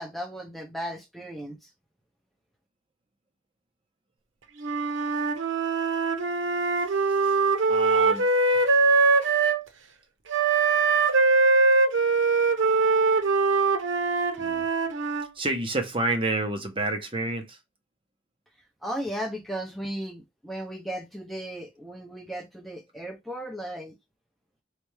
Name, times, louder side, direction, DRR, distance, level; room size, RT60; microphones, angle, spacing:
voice 1, 0.0-1.6 18.8-23.9, equal, ahead, 0.6 m, -35 dB
Wind instrument woodwind instrument, 4.6-9.6 10.3-15.3, right 4 dB, 85° right, 0.8 m, -22 dB
voice 2, 7.7-8.3 14.4-14.7 15.3-17.6, right 2 dB, 30° right, 0.8 m, -29 dB
4.2 x 3.3 x 3.2 m
head